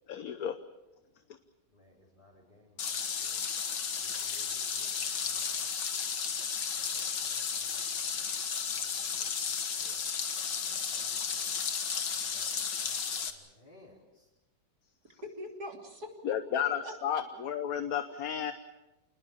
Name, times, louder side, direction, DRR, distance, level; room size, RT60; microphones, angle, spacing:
voice 1, 0.1-0.5 16.2-18.5, left 9 dB, 60° left, 9 dB, 1.4 m, -32 dB
voice 2, 1.7-3.5 4.0-5.7 6.7-8.5 8.7-10.0 10.7-11.6 12.2-14.3, left 1 dB, 25° left, -6 dB, 4.1 m, -61 dB
sound 1, 2.8-13.3, left 6 dB, 80° left, 2.2 m, -33 dB
voice 3, 15.2-17.2, left 1 dB, 60° right, 2 dB, 3.7 m, -43 dB
28.0 x 20.0 x 7.2 m, 1.0 s
omnidirectional pair, 1.9 m